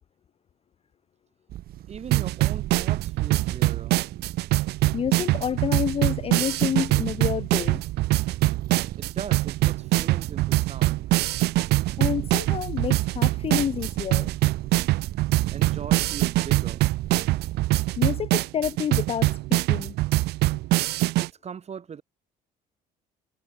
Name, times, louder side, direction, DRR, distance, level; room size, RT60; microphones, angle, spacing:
sound 1, 1.5-17.8, right 13 dB, 65° right, 1.1 m, -38 dB
voice 1, 1.9-4.0 9.0-11.1 15.5-16.8 21.2-22.0, right 7 dB, 40° right, 7.0 m, -39 dB
sound 2, 2.1-21.3, right 19 dB, 80° right, 0.5 m, -24 dB
voice 2, 4.9-7.8 12.0-14.3 18.0-20.0, left 8 dB, 35° left, 0.5 m, -29 dB
cardioid pair, 110°, 17 cm